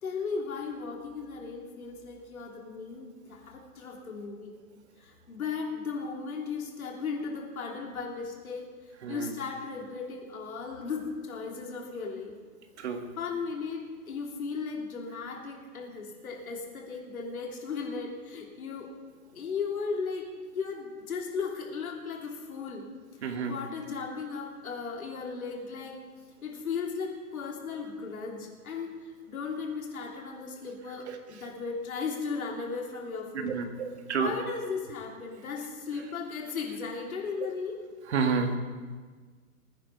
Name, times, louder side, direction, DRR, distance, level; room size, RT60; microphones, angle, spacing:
voice 1, 0.0-4.6 5.0-8.7 9.1-12.3 13.2-18.9 19.3-20.3 20.5-22.9 23.5-26.0 26.4-28.9 29.3-33.5 34.2-37.8, left 5 dB, 65° left, 0 dB, 3.3 m, -36 dB
voice 2, 23.2-23.6 31.1-31.2 33.4-34.3 38.1-38.5, right 6 dB, 45° right, 5 dB, 1.8 m, -29 dB
21.0 x 9.5 x 4.6 m, 1.5 s
hypercardioid pair, 165°, 45 cm